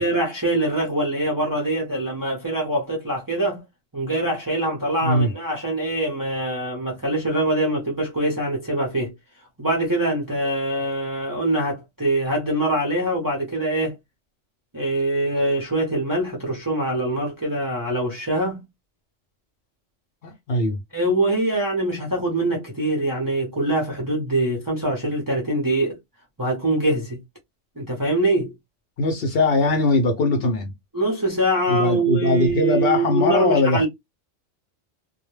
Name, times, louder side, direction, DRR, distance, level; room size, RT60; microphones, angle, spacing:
voice 1, 0.0-3.6 3.9-9.1 9.6-13.9 14.7-18.6 20.9-26.0 26.4-27.2 27.8-28.5 30.9-33.9, right 1 dB, 25° right, 0.5 m, -23 dB
voice 2, 5.0-5.3 20.2-20.8 29.0-30.7 31.7-33.9, left 2 dB, 60° left, 0.7 m, -20 dB
2.2 x 2.1 x 3.0 m
omnidirectional pair, 1.3 m